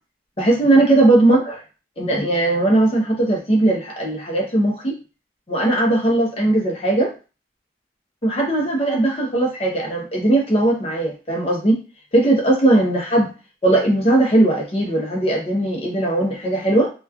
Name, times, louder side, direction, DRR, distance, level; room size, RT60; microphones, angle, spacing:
voice 1, 0.4-1.5 2.0-4.9 5.5-7.1 8.2-11.8 12.1-13.3 13.6-16.9, right 2 dB, 35° left, -1 dB, 0.7 m, -18 dB
2.9 x 2.2 x 2.4 m, 0.33 s
head